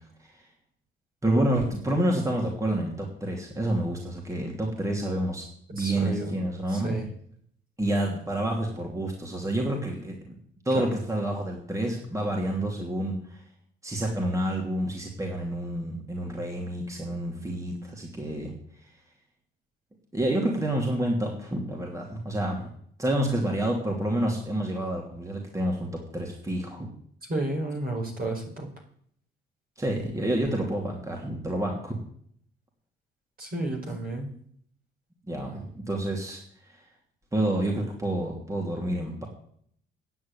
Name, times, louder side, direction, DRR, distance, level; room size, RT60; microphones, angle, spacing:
voice 1, 1.2-5.4 5.7-7.0 7.8-10.3 10.6-13.4 13.8-18.5 20.1-22.7 23.0-26.9 29.8-32.0 35.3-36.8 37.3-39.3, right 1 dB, 15° right, 0 dB, 2.8 m, -29 dB
voice 2, 5.8-6.3 6.7-7.1 10.7-10.9 27.3-28.7 33.4-34.3, right 1 dB, 45° right, 1 dB, 4.5 m, -31 dB
9.6 x 7.7 x 9.0 m, 0.64 s
cardioid pair, 90°, 20 cm